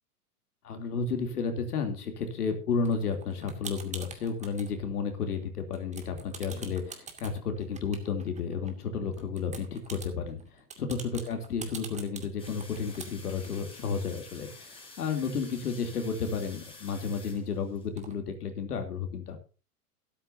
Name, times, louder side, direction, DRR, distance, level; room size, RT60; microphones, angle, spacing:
voice 1, 0.6-19.4, left 5 dB, 75° left, 5 dB, 3.2 m, -32 dB
sound 1, 2.8-4.7 5.1-5.5 5.7-8.7 9.1-15.3 15.6-15.7 15.9-17.4 18.0-18.1, right 5 dB, 15° right, 2.3 m, -46 dB
sound 2, 12.4-17.9, left 3 dB, 10° left, 4.8 m, -50 dB
13.0 x 13.0 x 2.7 m, 0.35 s
hypercardioid pair, 115°, 46 cm